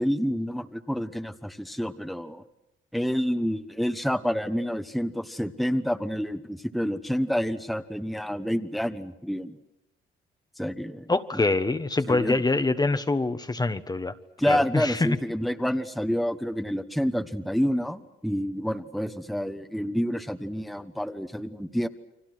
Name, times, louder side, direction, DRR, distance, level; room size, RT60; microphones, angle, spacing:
voice 1, 0.0-2.4 2.9-9.6 10.6-11.4 12.1-12.4 14.4-21.9, equal, ahead, 8 dB, 1.2 m, -28 dB
voice 2, 11.1-14.1 14.5-15.2, left 3 dB, 20° left, 10 dB, 1.3 m, -25 dB
30.0 x 24.0 x 6.2 m, 0.95 s
cardioid pair, 90°, 20 cm